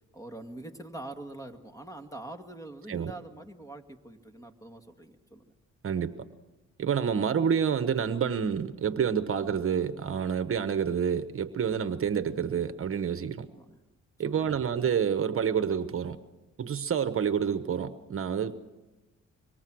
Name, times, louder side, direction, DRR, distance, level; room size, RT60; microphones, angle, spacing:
voice 1, 0.1-5.4 13.5-13.8 14.2-14.7, right 2 dB, 10° left, 6 dB, 2.1 m, -44 dB
voice 2, 5.8-6.2 6.8-13.5 14.2-16.2 16.6-18.5, right 7 dB, 45° right, 11 dB, 1.1 m, -28 dB
25.0 x 23.5 x 6.3 m, 1.1 s
cardioid pair, 90°, 30 cm